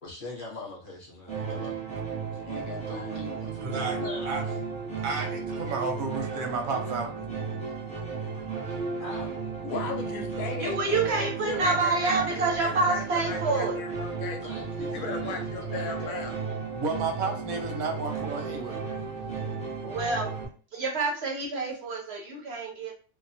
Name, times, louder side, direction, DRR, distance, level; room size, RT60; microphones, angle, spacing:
voice 1, 0.0-1.8 2.9-3.1 3.6-4.5 4.9-5.1 9.0-9.3 14.4-15.4 16.0-16.3 19.1-19.4, left 2 dB, 45° left, -3 dB, 0.9 m, -42 dB
sound 1, 1.3-20.5, right 5 dB, 10° left, 0.5 m, -34 dB
voice 2, 2.3-3.6 3.8-4.1 8.7-8.8 9.6-14.4 14.9-16.4, left 5 dB, 90° left, 4 dB, 1.1 m, -37 dB
voice 3, 3.6-4.0 4.3-4.4 5.0-7.1 16.7-18.8, right 4 dB, 90° right, 3 dB, 1.1 m, -31 dB
voice 4, 10.6-13.8 19.8-20.3 20.7-22.9, right 3 dB, 65° right, 0 dB, 0.7 m, -27 dB
2.8 x 2.0 x 2.6 m, 0.39 s
omnidirectional pair, 1.4 m